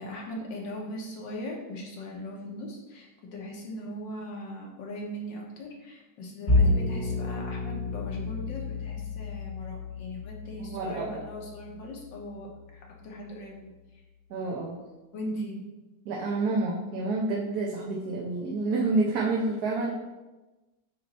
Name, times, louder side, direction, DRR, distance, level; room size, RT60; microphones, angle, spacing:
voice 1, 0.0-13.7 15.1-15.6, equal, 90° left, -1 dB, 1.8 m, -39 dB
Bowed string instrument, 6.5-12.9, left 2 dB, 30° left, 1.7 m, -30 dB
voice 2, 10.5-11.2 14.3-14.8 16.0-19.9, right 3 dB, 65° right, -3 dB, 1.2 m, -29 dB
8.3 x 3.0 x 4.1 m, 1.1 s
omnidirectional pair, 1.9 m